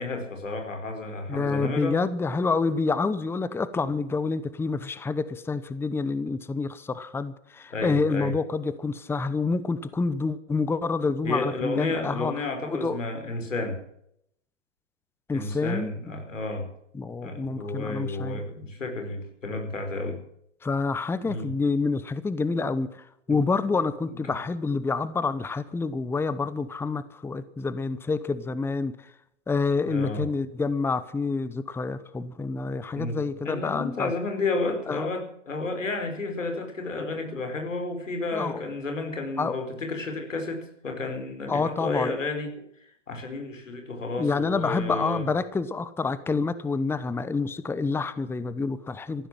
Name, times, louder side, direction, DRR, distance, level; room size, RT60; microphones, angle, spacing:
voice 1, 0.0-2.0 7.7-8.3 11.2-13.8 15.3-16.7 17.2-20.2 21.2-21.5 23.3-23.4 23.7-23.8 29.9-30.2 32.9-42.6 43.1-45.3, left 3 dB, 90° left, 5 dB, 4.8 m, -31 dB
voice 2, 1.3-12.3 12.7-13.0 15.3-15.9 16.9-18.4 20.6-28.9 29.5-34.1 34.9-35.1 38.3-38.6 39.4-39.6 41.5-42.1 44.2-49.3, left 4 dB, 5° left, 15 dB, 0.9 m, -28 dB
14.5 x 12.5 x 7.6 m, 0.73 s
hypercardioid pair, 115°, 37 cm